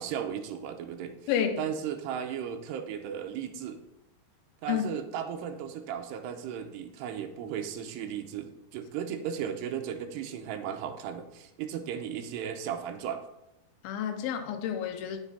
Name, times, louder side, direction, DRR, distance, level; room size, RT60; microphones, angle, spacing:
voice 1, 0.0-1.2 1.6-3.8 4.6-13.2, right 8 dB, 85° right, 6 dB, 2.9 m, -35 dB
voice 2, 1.3-1.6 4.7-4.9 13.8-15.2, left 9 dB, 75° left, 5 dB, 2.5 m, -30 dB
9.0 x 7.2 x 4.2 m, 0.87 s
omnidirectional pair, 4.8 m